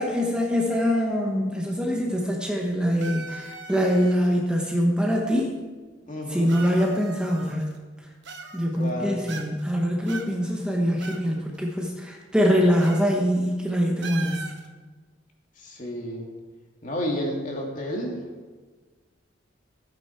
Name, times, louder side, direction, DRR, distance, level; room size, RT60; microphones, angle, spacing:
voice 1, 0.0-5.6 6.3-7.7 8.5-14.5, equal, 5° right, -1 dB, 1.1 m, -24 dB
sound 1, 3.0-4.3 5.3-5.4 6.5-7.8 8.2-8.9 9.3-9.7 10.1-11.3 11.5-11.6 12.8-13.1 13.4-13.5 14.0-14.7, right 4 dB, 65° right, 1.3 m, -40 dB
voice 2, 6.1-6.5 8.7-9.2 15.6-16.3 16.8-18.2, equal, 40° left, 0 dB, 2.3 m, -31 dB
14.5 x 9.2 x 4.6 m, 1.4 s
head